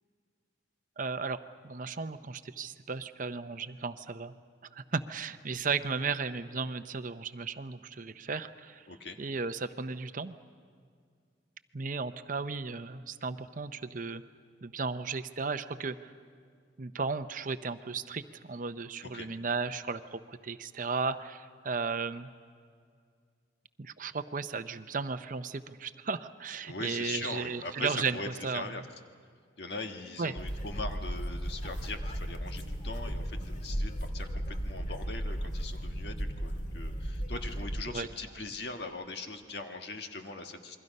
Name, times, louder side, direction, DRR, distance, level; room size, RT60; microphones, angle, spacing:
voice 1, 1.0-4.3 4.7-8.9 9.2-10.4 11.7-14.2 14.6-16.1 16.8-22.3 23.8-28.2 28.4-28.7 30.2-30.3 37.9-38.1, right 4 dB, 45° right, 11 dB, 0.7 m, -35 dB
voice 2, 8.9-9.2 19.1-19.3 26.6-28.8 29.6-40.8, left 3 dB, 65° left, 5 dB, 1.6 m, -41 dB
sound 1, 30.4-37.8, equal, 45° left, 1.9 m, -35 dB
28.5 x 22.5 x 5.4 m, 2.1 s
head